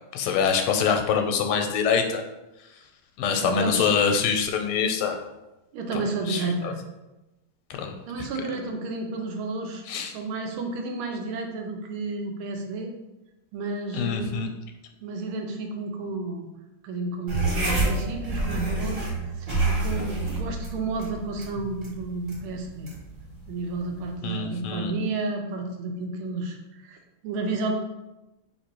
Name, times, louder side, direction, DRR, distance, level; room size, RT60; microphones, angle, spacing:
voice 1, 0.1-2.2 3.2-5.2 6.3-6.7 7.7-7.9 9.9-10.1 13.9-14.5 24.2-24.9, left 6 dB, 90° left, 5 dB, 1.4 m, -25 dB
voice 2, 3.4-3.9 5.7-6.8 8.1-12.9 13.5-14.4 15.0-16.5 16.8-22.9 23.5-27.0 27.2-27.7, right 3 dB, 85° right, 3 dB, 1.5 m, -31 dB
sound 1, 17.3-24.2, right 2 dB, 40° right, 0.7 m, -29 dB
3.3 x 2.9 x 4.4 m, 0.99 s
omnidirectional pair, 2.3 m